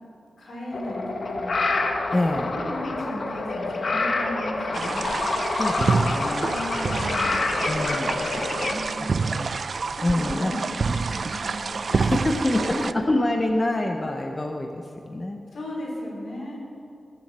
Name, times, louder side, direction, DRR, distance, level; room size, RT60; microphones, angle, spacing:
voice 1, 0.4-1.6 2.5-5.0 6.4-7.4 8.7-9.3 9.9-12.9 15.5-16.6, left 1 dB, 75° left, -3 dB, 4.6 m, -36 dB
sound 1, 0.7-8.8, left 3 dB, 55° left, 1.4 m, -27 dB
voice 2, 2.1-2.6 5.5-6.6 7.7-8.3 9.2-9.5 10.0-10.5 11.9-15.4, left 1 dB, 20° left, 3 dB, 0.8 m, -26 dB
sound 2, 4.7-12.9, right 4 dB, 55° right, 0.3 m, -28 dB
20.5 x 7.4 x 7.4 m, 2.5 s
wide cardioid pair, 140°, 0 cm